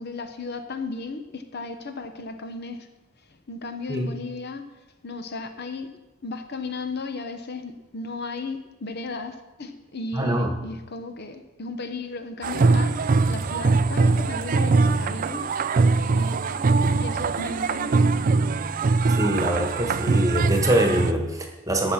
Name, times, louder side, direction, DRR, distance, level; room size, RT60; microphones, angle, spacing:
voice 1, 0.0-2.9 3.3-4.7 5.0-5.9 6.2-13.0 13.3-15.9 16.1-16.6 16.9-18.4, left 3 dB, 55° left, 8 dB, 0.9 m, -35 dB
voice 2, 10.1-10.5 19.1-21.9, right 1 dB, 15° right, 3 dB, 1.4 m, -24 dB
sound 1, 12.4-21.1, right 3 dB, 45° right, 0.4 m, -22 dB
13.5 x 5.8 x 5.8 m, 1.0 s
head